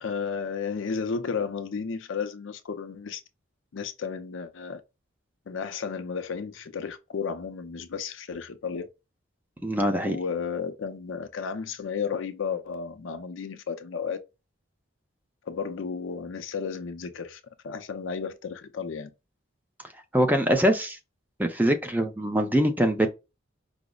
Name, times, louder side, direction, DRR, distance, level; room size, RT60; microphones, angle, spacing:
voice 1, 0.0-3.2 3.7-4.8 5.5-8.9 10.0-14.2 15.5-19.1, left 5 dB, 75° left, 0.5 m, -33 dB
voice 2, 9.6-10.2 20.1-21.0 21.4-23.1, equal, 10° right, 0.4 m, -23 dB
4.9 x 2.0 x 2.2 m
head